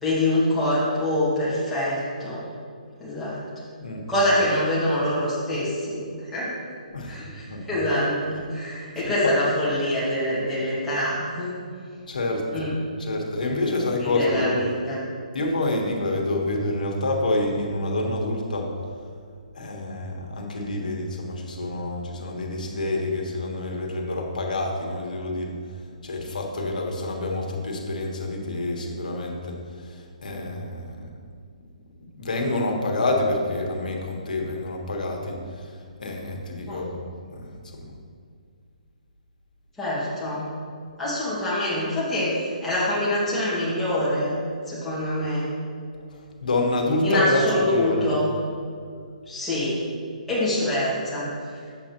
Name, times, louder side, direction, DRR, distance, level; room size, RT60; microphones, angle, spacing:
voice 1, 0.0-2.4 3.0-3.4 4.1-6.5 7.1-7.4 7.7-11.5 12.5-12.7 14.0-15.0 36.7-36.8 39.8-40.5 41.0-44.4 44.7-45.5 47.0-48.3 49.3-49.8 50.3-51.3, left 1 dB, 5° left, -11 dB, 1.8 m, -25 dB
voice 2, 3.8-4.2 6.9-7.2 7.5-7.6 9.0-9.3 12.1-12.7 13.0-14.7 15.3-18.7 19.5-25.5 26.0-29.6 29.8-31.1 32.2-35.7 36.0-37.0 37.3-37.5 37.7-37.9 46.4-48.1, left 2 dB, 85° left, 1 dB, 1.4 m, -27 dB
7.7 x 7.6 x 3.0 m, 2.2 s
hypercardioid pair, 170°, 4 cm